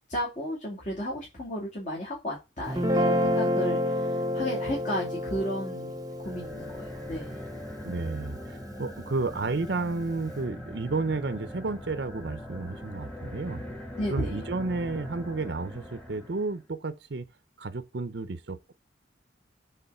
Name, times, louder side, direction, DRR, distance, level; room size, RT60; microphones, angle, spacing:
voice 1, 0.1-5.9 6.2-7.4 14.0-14.4, equal, 40° left, 2.5 m, -33 dB
Guitar, 2.7-9.0, left 1 dB, 20° right, 0.9 m, -30 dB
sound 1, 6.2-16.6, equal, 5° left, 1.5 m, -42 dB
voice 2, 7.8-13.6 14.1-17.3 17.6-18.7, right 3 dB, 60° right, 0.6 m, -32 dB
7.9 x 3.9 x 5.5 m
head